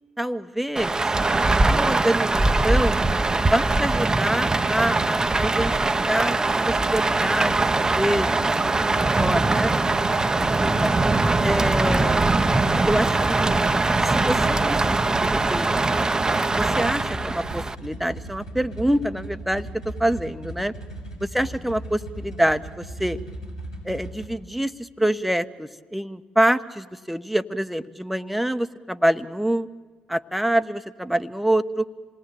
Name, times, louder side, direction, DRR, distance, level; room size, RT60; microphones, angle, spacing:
voice 1, 0.2-0.9 1.6-3.0 3.4-5.8 6.1-6.4 6.7-9.7 10.2-10.9 11.4-12.3 12.7-13.6 14.1-16.0 16.3-19.7 20.0-20.7 21.2-23.2 23.8-29.7 30.1-31.9, right 1 dB, ahead, 10 dB, 1.1 m, -26 dB
Rain, 0.8-17.8, right 3 dB, 20° right, 0.9 m, -22 dB
sound 1, 7.1-24.3, right 1 dB, 90° left, 3.7 m, -38 dB
27.5 x 18.5 x 9.2 m, 1.4 s
figure-of-eight pair, 45°, 3 cm